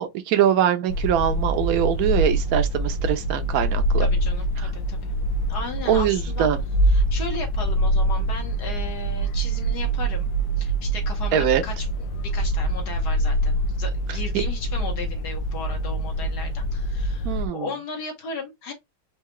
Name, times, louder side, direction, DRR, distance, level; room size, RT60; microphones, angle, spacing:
voice 1, 0.0-4.1 5.9-6.6 11.3-11.6 14.3-14.4 17.2-17.7, right 9 dB, 60° right, 1.1 m, -22 dB
sound 1, 0.9-17.5, right 1 dB, 80° left, 1.4 m, -25 dB
voice 2, 4.0-5.1 5.5-6.5 6.9-10.3 10.6-18.7, left 3 dB, 60° left, 1.7 m, -36 dB
4.7 x 2.8 x 3.1 m
omnidirectional pair, 2.0 m